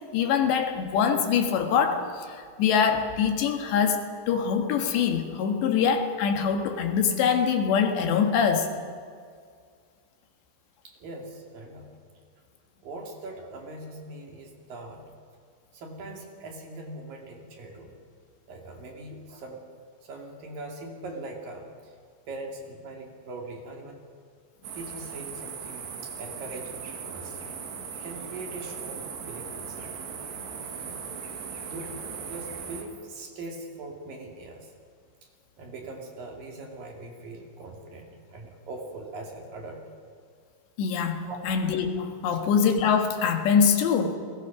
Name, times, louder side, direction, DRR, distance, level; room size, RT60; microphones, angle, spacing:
voice 1, 0.1-8.7 40.8-44.2, left 7 dB, 70° left, 5 dB, 3.7 m, -24 dB
voice 2, 10.8-11.9 12.8-15.0 15.7-18.0 18.5-19.6 20.0-22.0 22.3-24.0 24.7-27.4 28.0-29.9 30.8-31.1 31.7-34.7 35.6-39.8 41.2-41.4 42.3-42.4, right 2 dB, 55° right, 1 dB, 3.7 m, -41 dB
sound 1, 24.6-32.8, right 6 dB, 70° right, 4.5 m, -38 dB
30.0 x 21.5 x 6.0 m, 2.1 s
omnidirectional pair, 5.3 m